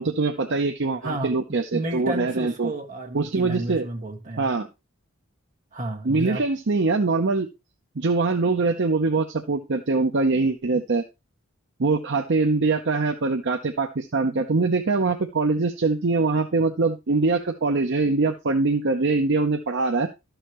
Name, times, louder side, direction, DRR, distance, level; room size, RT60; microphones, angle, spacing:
voice 1, 0.0-2.7 3.1-3.9 4.4-4.7 6.0-7.5 8.0-11.0 11.8-20.1, right 3 dB, 55° right, 0.7 m, -23 dB
voice 2, 1.0-4.5 5.7-6.4, right 1 dB, 35° right, 1.7 m, -32 dB
12.5 x 6.4 x 3.0 m
head